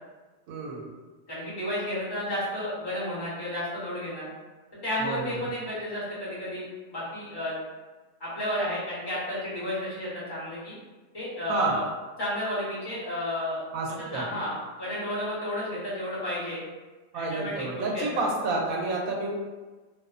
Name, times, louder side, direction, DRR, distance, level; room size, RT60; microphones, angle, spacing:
voice 1, 0.5-0.9 5.0-5.4 11.5-11.8 13.7-14.3 17.1-19.3, right 2 dB, 80° right, -1 dB, 1.0 m, -29 dB
voice 2, 1.3-4.3 4.8-7.5 8.2-10.8 11.1-11.8 12.2-13.6 14.1-16.6 17.1-18.0, left 1 dB, 20° left, -9 dB, 0.8 m, -32 dB
2.6 x 2.0 x 2.4 m, 1.2 s
omnidirectional pair, 1.4 m